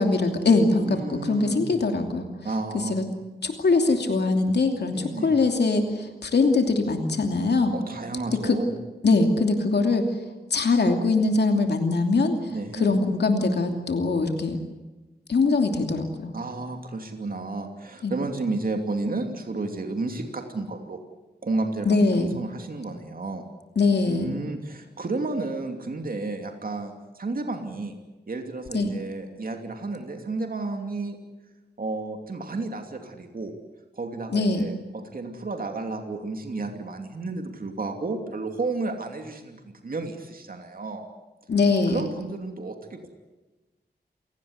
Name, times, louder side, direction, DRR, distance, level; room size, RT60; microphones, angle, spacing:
voice 1, 0.0-2.3 2.9-3.0 3.4-7.7 8.4-8.6 9.0-10.1 10.5-14.6 15.3-16.3 18.0-18.2 21.9-22.4 23.8-24.3 28.7-28.9 34.3-34.6 41.5-42.0, left 3 dB, 90° left, 4 dB, 2.8 m, -22 dB
voice 2, 0.8-1.7 2.4-3.0 4.9-5.3 7.7-8.7 12.5-12.9 16.3-21.0 21.4-23.5 24.0-28.0 28.3-31.2 31.8-33.5 34.0-41.1 41.9-43.1, right 3 dB, 60° right, 4 dB, 2.8 m, -32 dB
29.0 x 18.0 x 8.2 m, 1.2 s
wide cardioid pair, 115°, 17 cm